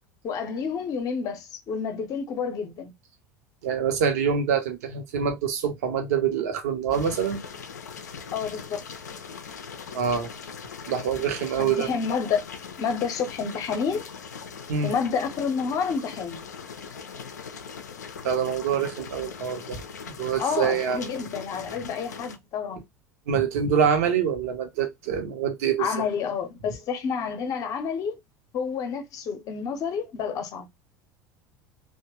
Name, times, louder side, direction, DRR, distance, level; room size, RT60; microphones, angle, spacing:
voice 1, 0.2-2.9 5.2-5.3 8.3-8.8 11.6-12.5 12.8-14.0 14.8-16.4 20.4-22.8 25.8-28.2 28.5-30.7, left 6 dB, 40° left, 0.7 m, -29 dB
voice 2, 3.6-7.4 9.9-10.3 10.9-11.9 14.7-14.9 18.2-19.8 20.1-21.0 23.3-25.9, right 7 dB, 60° right, 0.7 m, -25 dB
sound 1, 6.9-22.4, left 6 dB, 75° left, 0.4 m, -40 dB
2.8 x 2.1 x 3.1 m
figure-of-eight pair, 75°, 9 cm